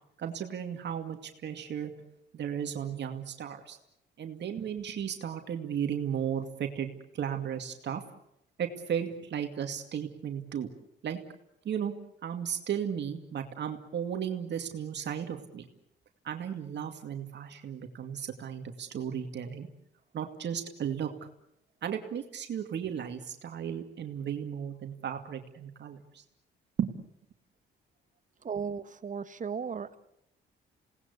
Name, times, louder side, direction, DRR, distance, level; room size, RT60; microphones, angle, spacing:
voice 1, 0.2-1.9 2.3-3.8 4.2-8.0 8.6-10.7 11.0-11.2 11.6-11.9 12.2-15.7 16.2-19.7 20.1-21.1 21.8-26.2 26.8-26.9, right 8 dB, 60° right, 5 dB, 2.4 m, -35 dB
voice 2, 28.4-30.0, right 6 dB, 40° right, 12 dB, 1.4 m, -35 dB
28.0 x 19.0 x 8.4 m, 0.78 s
cardioid pair, 90°, 20 cm